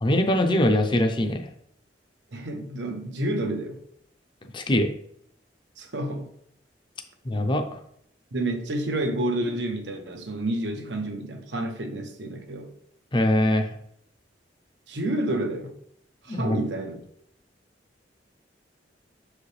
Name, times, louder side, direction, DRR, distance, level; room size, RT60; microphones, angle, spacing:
voice 1, 0.0-1.5 4.5-4.9 7.2-7.8 13.1-13.7 16.3-16.6, left 1 dB, 25° left, 0.6 m, -22 dB
voice 2, 2.3-3.7 5.8-6.3 8.3-12.7 14.9-15.7 16.2-17.0, right 1 dB, 85° right, 1.0 m, -29 dB
6.6 x 4.9 x 3.3 m
head